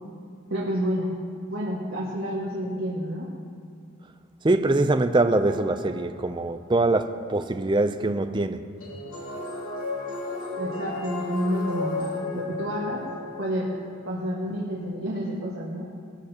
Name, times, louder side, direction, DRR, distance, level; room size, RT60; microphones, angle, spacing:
voice 1, 0.5-1.1 1.5-3.3 10.6-13.0 13.4-13.7 14.1-15.9, equal, 70° right, 1.7 m, -29 dB
voice 2, 4.4-8.6, right 2 dB, 20° right, 0.4 m, -23 dB
sound 1, 5.2-6.5 8.8-14.1, left 3 dB, 80° left, 2.8 m, -34 dB
19.5 x 12.5 x 2.9 m
head